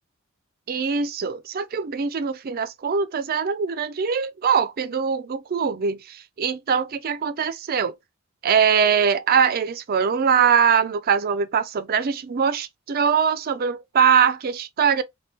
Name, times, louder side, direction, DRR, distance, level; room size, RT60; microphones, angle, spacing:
voice 1, 0.7-7.9 8.4-15.0, right 7 dB, 45° right, 0.4 m, -22 dB
3.6 x 2.2 x 2.4 m
head